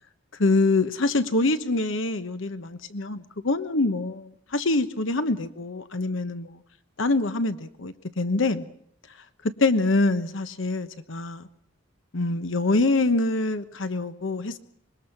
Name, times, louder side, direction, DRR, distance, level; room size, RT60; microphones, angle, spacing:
voice 1, 0.4-6.5 7.0-8.7 9.4-11.5 12.1-14.6, left 2 dB, 70° left, 11 dB, 1.1 m, -25 dB
25.0 x 22.0 x 6.0 m, 0.69 s
head